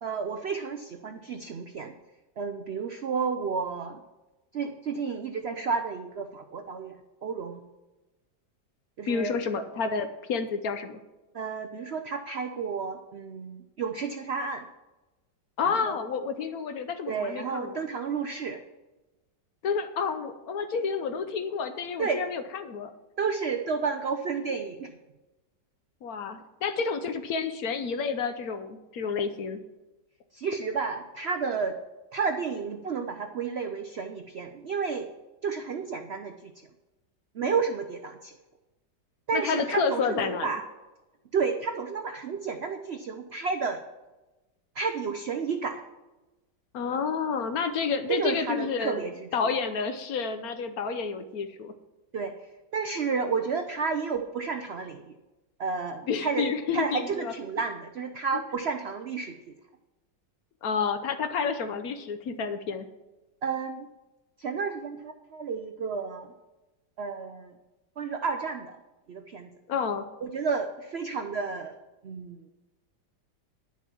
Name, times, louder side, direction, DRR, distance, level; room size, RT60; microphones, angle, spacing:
voice 1, 0.0-1.9 2.4-4.0 4.5-7.6 9.0-9.4 11.3-14.7 15.6-16.0 17.1-18.6 22.0-22.2 23.2-24.9 30.3-31.8 32.1-35.1 35.4-36.5 37.3-38.3 39.3-40.6 41.3-43.8 44.8-45.8 48.1-49.5 52.1-52.3 52.7-55.2 55.6-59.6 63.4-63.9 64.4-66.3 67.0-67.5 68.0-68.7 69.1-69.5 70.2-71.8 72.0-72.4, right 5 dB, 70° right, 7 dB, 0.6 m, -31 dB
voice 2, 9.1-11.0 15.6-17.8 19.6-22.9 26.0-29.6 39.3-40.5 46.7-51.7 56.1-57.3 58.3-58.4 60.6-62.9 69.7-70.0, left 5 dB, 60° left, 9 dB, 1.1 m, -30 dB
11.0 x 7.2 x 6.1 m, 1.1 s
omnidirectional pair, 1.9 m